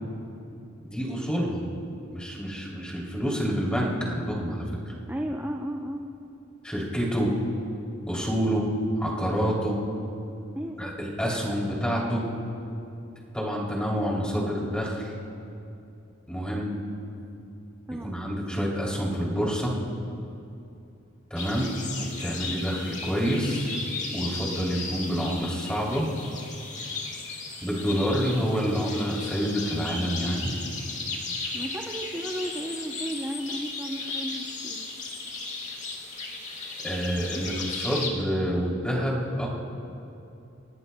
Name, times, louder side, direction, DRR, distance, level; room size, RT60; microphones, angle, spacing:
voice 1, 0.8-1.7 2.1-4.9 6.6-7.3 8.1-8.6 9.0-9.8 10.8-12.2 13.3-15.1 16.3-16.7 18.0-19.7 21.3-23.8 24.1-26.1 27.6-30.5 36.8-39.5, equal, 5° left, -4 dB, 3.0 m, -28 dB
voice 2, 5.1-6.1 10.5-10.9 17.9-18.2 31.5-34.8, equal, 10° right, 0 dB, 0.7 m, -34 dB
sound 1, 21.4-38.1, left 3 dB, 35° left, 1.8 m, -36 dB
30.0 x 17.5 x 2.3 m, 2.7 s
head